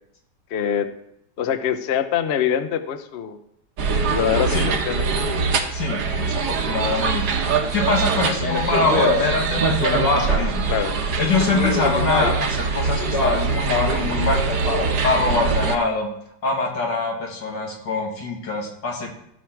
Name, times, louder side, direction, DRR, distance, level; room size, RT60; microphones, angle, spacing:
voice 1, 0.5-0.9 1.4-3.4 4.1-5.0 10.7-11.0, left 9 dB, 55° left, 10 dB, 0.7 m, -24 dB
sound 1, 3.8-15.8, right 5 dB, 70° right, 1.5 m, -23 dB
voice 2, 5.7-7.3 7.7-10.6 11.2-14.4 15.0-16.1 16.4-19.2, left 3 dB, 90° left, 0 dB, 2.7 m, -24 dB
Speech, 8.4-10.5 11.4-12.5 13.0-14.1 14.5-15.1, left 3 dB, 35° left, 1.4 m, -24 dB
15.0 x 6.3 x 4.6 m, 0.76 s
omnidirectional pair, 1.9 m